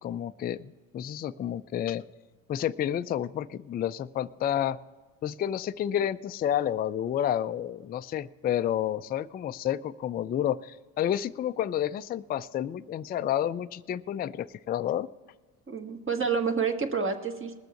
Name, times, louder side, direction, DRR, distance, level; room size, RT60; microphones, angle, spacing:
voice 1, 0.0-2.1 2.5-4.8 5.2-15.1, left 10 dB, 25° left, 12 dB, 0.3 m, -30 dB
voice 2, 15.7-17.6, right 5 dB, 25° right, 5 dB, 1.6 m, -28 dB
19.5 x 6.8 x 5.8 m, 1.4 s
hypercardioid pair, 65°, 46 cm